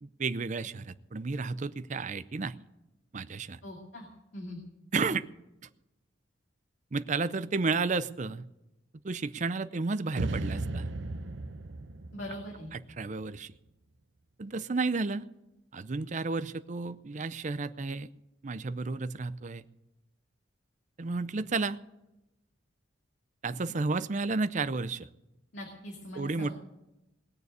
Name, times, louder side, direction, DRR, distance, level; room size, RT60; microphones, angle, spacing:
voice 1, 0.0-2.5 3.1-3.6 4.9-5.2 6.9-8.5 9.0-10.9 12.7-13.5 14.4-15.3 15.7-18.1 18.4-19.6 21.0-21.8 23.4-25.1 26.1-26.5, right 4 dB, 40° right, 14 dB, 0.5 m, -32 dB
voice 2, 3.6-4.1 4.3-4.6 12.1-12.7 25.5-26.5, left 1 dB, 75° left, 0 dB, 2.5 m, -41 dB
sound 1, 10.2-13.4, right 2 dB, 75° right, 0.7 m, -36 dB
20.0 x 6.9 x 8.1 m, 0.93 s
head